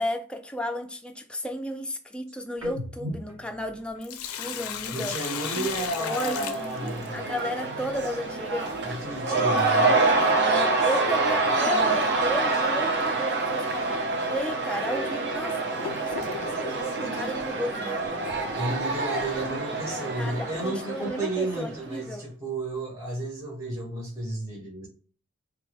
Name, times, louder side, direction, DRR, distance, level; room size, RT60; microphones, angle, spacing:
voice 1, 0.0-5.2 5.6-5.7 6.0-8.7 10.4-14.0 14.3-16.7 17.0-18.3 20.2-22.2, left 1 dB, 5° left, 0.3 m, -33 dB
sound 1, 2.6-6.1 6.4-8.3 8.6-10.4 10.8-12.6, equal, 70° right, 1.2 m, -45 dB
Sink (filling or washing), 3.8-7.4 9.8-9.9 11.8-12.0 12.5-12.6 13.4-13.5 14.2-14.3 15.0-16.9, left 9 dB, 85° left, 0.4 m, -36 dB
voice 2, 4.9-7.2 8.8-10.0 18.5-24.9, right 2 dB, 15° right, 0.8 m, -32 dB
Cheering / Crowd, 5.0-21.9, right 3 dB, 55° right, 0.7 m, -27 dB
2.9 x 2.1 x 3.3 m
head